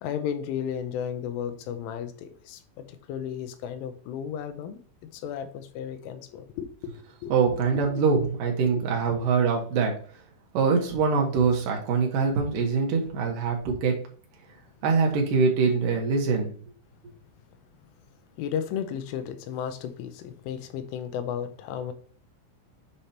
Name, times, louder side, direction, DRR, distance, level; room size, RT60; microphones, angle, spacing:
voice 1, 0.0-4.8 5.1-8.0 8.7-8.8 18.4-21.9, left 8 dB, 85° left, 3.2 m, -34 dB
voice 2, 7.3-9.9 10.5-14.0 14.8-16.5, right 5 dB, 70° right, 2.1 m, -23 dB
7.9 x 5.0 x 2.9 m
omnidirectional pair, 5.7 m